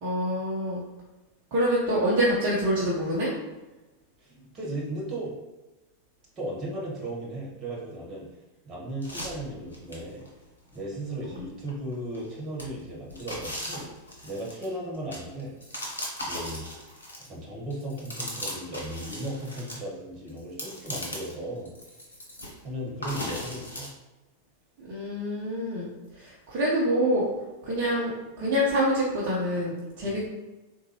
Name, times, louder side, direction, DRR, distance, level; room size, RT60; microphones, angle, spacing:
voice 1, 0.0-0.8 1.5-3.3 11.4-11.5 24.8-25.9 26.2-27.3 27.6-28.1 28.4-30.2, equal, 45° right, -7 dB, 0.8 m, -26 dB
voice 2, 4.2-5.3 6.4-8.3 8.6-10.2 10.7-13.9 14.2-15.5 16.2-16.6 17.3-22.0 22.6-23.9 30.0-30.2, right 1 dB, 25° right, -4 dB, 1.3 m, -36 dB
sound 1, 9.0-10.3 10.7-10.8 11.3-12.2 12.6-17.4 17.7-19.8 20.3-21.4 21.7-22.6 23.0-23.9, left 1 dB, 75° left, 0.7 m, -38 dB
3.9 x 2.2 x 2.9 m, 1.1 s
figure-of-eight pair, 90°, 0 cm